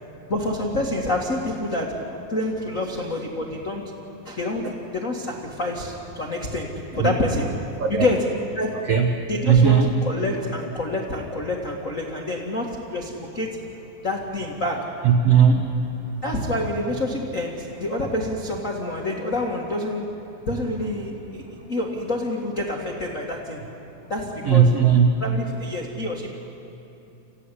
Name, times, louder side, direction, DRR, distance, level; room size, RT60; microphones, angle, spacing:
voice 1, 0.3-3.9 4.2-7.5 7.9-8.9 9.3-13.6 14.0-15.0 16.2-20.2 20.4-23.6 24.1-24.8 25.2-26.3, left 1 dB, 50° left, -1 dB, 0.9 m, -27 dB
voice 2, 9.4-9.9 15.0-15.7 24.4-25.2, right 7 dB, 70° right, 3 dB, 1.4 m, -17 dB
27.0 x 15.0 x 9.9 m, 2.8 s
omnidirectional pair, 4.4 m